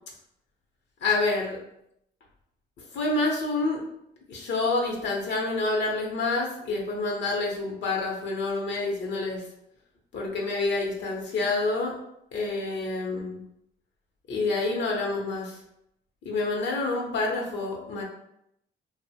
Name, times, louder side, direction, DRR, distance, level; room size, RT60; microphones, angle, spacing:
voice 1, 1.0-1.6 2.8-3.8 4.3-9.4 10.1-12.0 12.3-13.4 14.3-15.6 16.2-18.0, left 3 dB, 65° left, 0 dB, 0.7 m, -28 dB
2.9 x 2.0 x 2.7 m, 0.77 s
cardioid pair, 90°, 20 cm